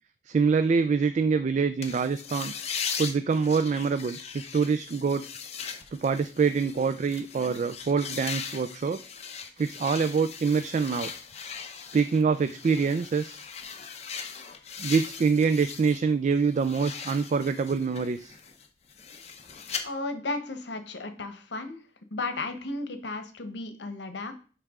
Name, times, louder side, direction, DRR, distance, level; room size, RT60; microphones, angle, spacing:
voice 1, 0.3-2.5 3.0-4.2 4.5-5.3 6.0-9.0 9.6-11.1 11.9-13.4 14.8-18.4, right 5 dB, 45° right, 10 dB, 0.3 m, -25 dB
sound 1, 1.8-16.0 16.4-19.8, left 6 dB, 40° left, 0.8 m, -39 dB
voice 2, 19.8-21.8 22.1-24.3, left 2 dB, 80° left, 8 dB, 1.0 m, -34 dB
9.9 x 3.4 x 3.6 m, 0.38 s
head